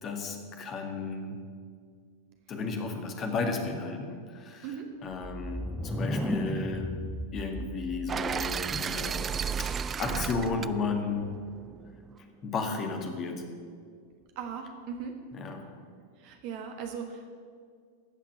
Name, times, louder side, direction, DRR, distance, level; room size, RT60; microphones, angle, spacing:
voice 1, 0.0-1.4 2.5-4.7 5.0-6.9 7.3-9.3 9.6-11.3 12.4-13.4 15.3-15.7, left 4 dB, 30° left, 5 dB, 1.8 m, -33 dB
voice 2, 4.6-4.9 14.3-15.2 16.2-17.3, right 6 dB, 45° right, 4 dB, 1.3 m, -38 dB
sound 1, 5.1-8.9, equal, 5° left, 0.8 m, -35 dB
sound 2, 8.1-12.1, right 7 dB, 20° right, 0.3 m, -34 dB
15.5 x 5.9 x 8.5 m, 2.1 s
figure-of-eight pair, 90°, 0 cm